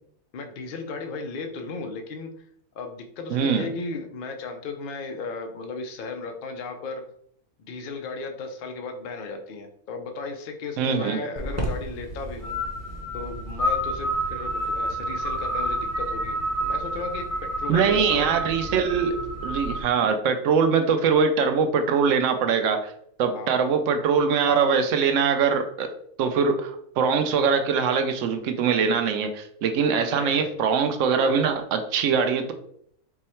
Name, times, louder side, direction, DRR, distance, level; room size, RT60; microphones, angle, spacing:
voice 1, 0.3-2.3 2.7-7.0 7.6-12.5 13.1-18.3 23.3-23.6 30.0-30.5, left 4 dB, 90° left, 5 dB, 0.4 m, -35 dB
voice 2, 3.3-3.7 10.8-11.2 17.7-22.9 23.2-25.9 26.2-32.5, right 6 dB, 65° right, 7 dB, 0.8 m, -22 dB
sound 1, 11.4-19.8, right 1 dB, 15° right, 0.6 m, -29 dB
4.6 x 2.1 x 4.2 m, 0.66 s
omnidirectional pair, 1.6 m